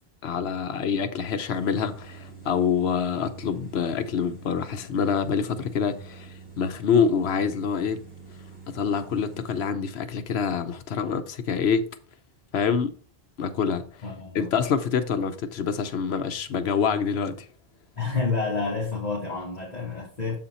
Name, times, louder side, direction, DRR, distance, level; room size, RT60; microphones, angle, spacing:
voice 1, 0.2-8.0 8.7-11.9 12.5-12.9 13.4-13.8 14.3-17.5, left 6 dB, 85° left, 1.0 m, -26 dB
sound 1, 1.5-9.7, right 5 dB, 25° right, 4.2 m, -46 dB
voice 2, 14.0-14.5 18.0-20.4, left 4 dB, 40° left, 1.8 m, -29 dB
7.5 x 4.3 x 4.1 m
omnidirectional pair, 1.0 m